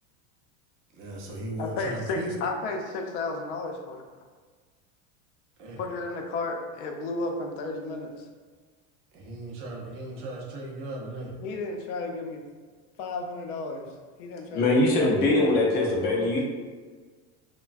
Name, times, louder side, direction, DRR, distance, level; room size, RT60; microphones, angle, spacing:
voice 1, 0.9-2.3 5.6-5.8 9.1-11.3, right 1 dB, 40° right, -1 dB, 0.4 m, -36 dB
voice 2, 1.6-4.0 5.8-8.3 11.4-12.4 13.0-13.9 14.2-15.1, left 3 dB, 85° left, 2 dB, 0.5 m, -33 dB
voice 3, 14.5-16.4, left 2 dB, 30° left, -2 dB, 0.4 m, -22 dB
3.1 x 2.1 x 2.3 m, 1.5 s
cardioid pair, 165°, 35 cm